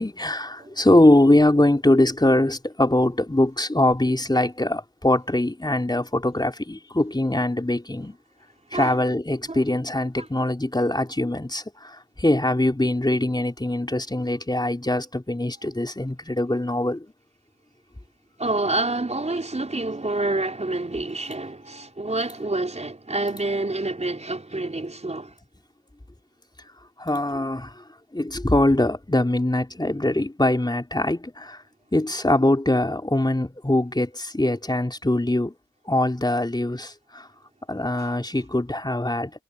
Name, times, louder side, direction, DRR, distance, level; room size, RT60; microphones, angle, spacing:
voice 1, 0.0-8.2 8.7-17.1 27.0-27.7 28.1-31.6 31.9-35.5 35.9-37.3 37.7-39.3, left 1 dB, 15° left, 3.8 m, -22 dB
voice 2, 18.4-25.3 38.0-38.1, right 2 dB, 20° right, 4.8 m, -28 dB
cardioid pair, 50°, 30 cm